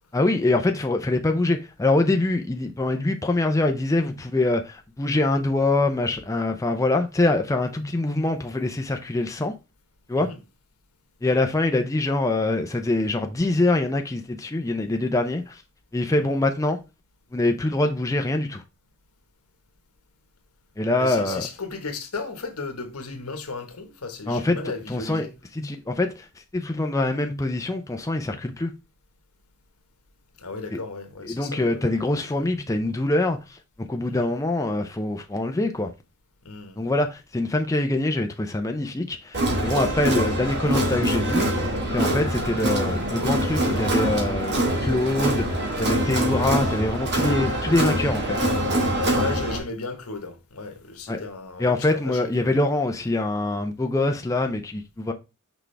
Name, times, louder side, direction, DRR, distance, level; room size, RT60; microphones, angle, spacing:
voice 1, 0.1-9.5 10.1-10.3 11.2-15.6 15.9-16.8 17.3-18.6 20.8-21.5 24.3-25.3 25.5-26.3 26.5-28.7 30.7-30.8 31.2-35.9 36.8-41.5 41.9-44.5 44.8-48.5 51.1-51.2 51.6-55.1, left 2 dB, 15° left, 0.5 m, -24 dB
voice 2, 21.0-25.3 30.4-32.5 34.2-34.3 36.4-36.8 39.9-40.0 49.1-52.5, left 3 dB, 80° left, 1.4 m, -35 dB
Crowd, 39.3-49.6, right 1 dB, 50° right, 2.0 m, -24 dB
6.1 x 4.8 x 3.3 m
head